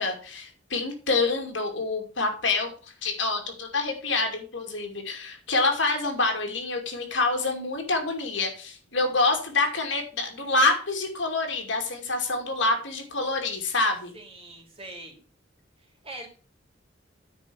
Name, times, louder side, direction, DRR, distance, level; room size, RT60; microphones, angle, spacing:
voice 1, 0.0-2.7 3.0-14.1, left 3 dB, 70° left, 3 dB, 2.5 m, -27 dB
voice 2, 14.1-15.2 16.0-16.3, right 2 dB, 30° right, 1 dB, 3.2 m, -42 dB
9.5 x 4.7 x 7.1 m, 0.38 s
head